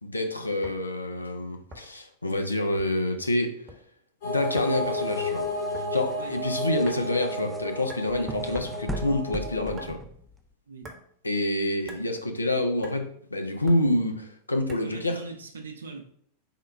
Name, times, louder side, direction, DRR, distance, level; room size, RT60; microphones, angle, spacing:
voice 1, 0.0-3.6 4.2-5.5 5.9-10.0 11.2-15.2, left 1 dB, 80° left, 5 dB, 0.5 m, -27 dB
sound 1, 0.6-0.9 1.7-2.1 2.8-3.1 3.4-3.8 4.6-4.8 5.7-5.9 6.8-7.2 7.9-8.1 8.9-9.1 9.8-10.0 10.8-11.0 11.8-12.1 12.8-13.0 13.7-13.9 14.7-15.0, right 2 dB, 20° right, 0.9 m, -44 dB
sound 2, 4.2-9.9, left 1 dB, 55° left, 1.3 m, -32 dB
sound 3, 4.8-10.5, right 1 dB, 5° right, 0.3 m, -39 dB
voice 2, 14.8-16.0, right 4 dB, 70° right, 4 dB, 0.6 m, -41 dB
3.7 x 2.2 x 4.3 m, 0.63 s
figure-of-eight pair, 90°, 0 cm